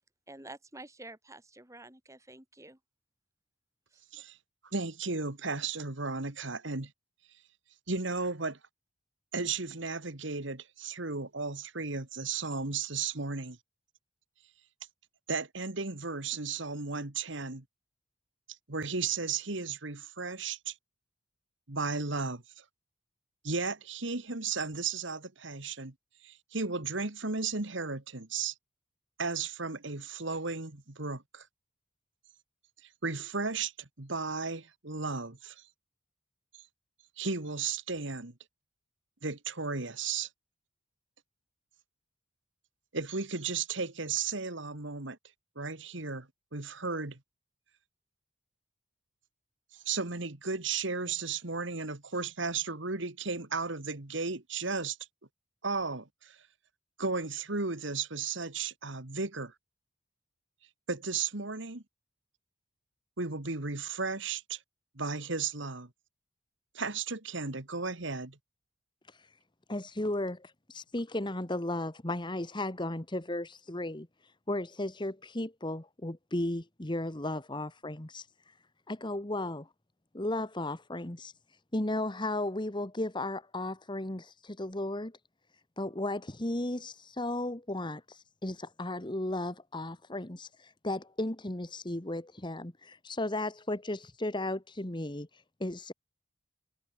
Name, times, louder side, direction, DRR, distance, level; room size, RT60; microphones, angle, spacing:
voice 1, 0.3-2.8 3.9-4.0, right 2 dB, 15° right, 6.8 m, -49 dB
voice 2, 4.7-6.9 7.9-8.6 9.3-13.6 15.3-17.6 18.7-20.8 21.7-22.6 23.4-25.9 26.2-28.5 29.2-31.5 32.8-35.7 36.5-36.7 37.2-38.3 39.2-40.3 42.9-45.2 45.6-47.2 49.7-55.0 55.6-56.5 57.0-59.5 60.9-61.8 63.2-64.6 65.0-65.9 66.7-68.4, right 4 dB, 65° right, 2.0 m, -34 dB
voice 3, 69.7-74.1 74.5-78.3 78.9-79.7 80.1-81.3 81.7-85.2 85.8-95.9, left 1 dB, 25° left, 1.6 m, -35 dB
head